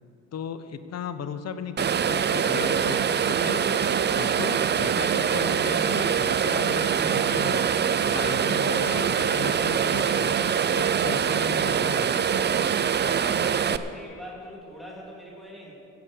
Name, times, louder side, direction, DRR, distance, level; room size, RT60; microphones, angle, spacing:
voice 1, 0.3-3.6 4.1-7.7 8.0-10.4 10.7-12.6, left 7 dB, 60° left, 10 dB, 1.0 m, -36 dB
sound 1, 1.8-13.8, right 7 dB, 35° right, 0.5 m, -24 dB
voice 2, 13.2-15.7, equal, ahead, -5 dB, 3.4 m, -42 dB
15.5 x 8.5 x 6.7 m, 2.7 s
cardioid pair, 90°, 30 cm